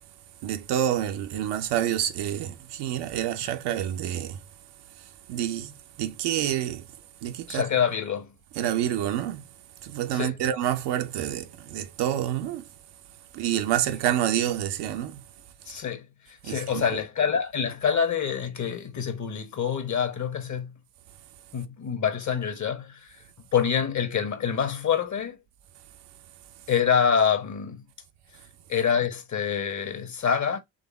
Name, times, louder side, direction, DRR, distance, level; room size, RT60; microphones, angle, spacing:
voice 1, 0.4-4.4 5.3-5.7 6.0-6.9 7.2-7.7 8.6-9.4 9.8-12.6 13.3-15.2 16.4-16.8, right 11 dB, 55° right, 0.7 m, -28 dB
voice 2, 7.5-8.3 10.1-10.4 15.7-20.7 21.5-23.1 23.5-25.4 26.7-27.8 28.7-30.6, left 7 dB, 35° left, 1.1 m, -26 dB
4.0 x 3.4 x 3.4 m
figure-of-eight pair, 45°, 49 cm